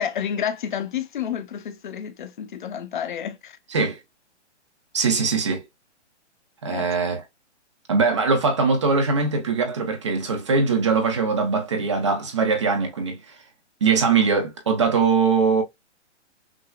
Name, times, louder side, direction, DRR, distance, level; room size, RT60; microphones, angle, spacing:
voice 1, 0.0-3.6 6.7-6.9, left 8 dB, 45° left, 0.6 m, -30 dB
voice 2, 4.9-5.6 6.6-7.2 7.9-13.2 13.8-15.6, right 4 dB, 25° right, 0.6 m, -21 dB
6.0 x 2.0 x 2.2 m
hypercardioid pair, 170°, 36 cm